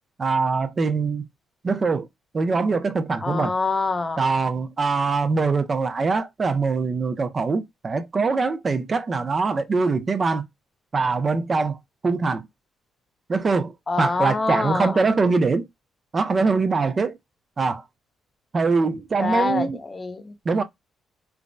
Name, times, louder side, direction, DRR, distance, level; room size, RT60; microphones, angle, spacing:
voice 1, 0.2-1.2 1.6-2.1 2.3-3.5 4.2-10.5 10.9-11.8 12.0-12.5 13.3-15.7 16.1-17.2 17.6-17.8 18.5-19.8 20.5-20.6, right 4 dB, 35° right, 0.4 m, -23 dB
voice 2, 3.2-4.2 13.9-15.0 19.2-20.3, left 3 dB, 30° left, 0.5 m, -25 dB
3.3 x 2.0 x 2.5 m
cardioid pair, 90°, 0 cm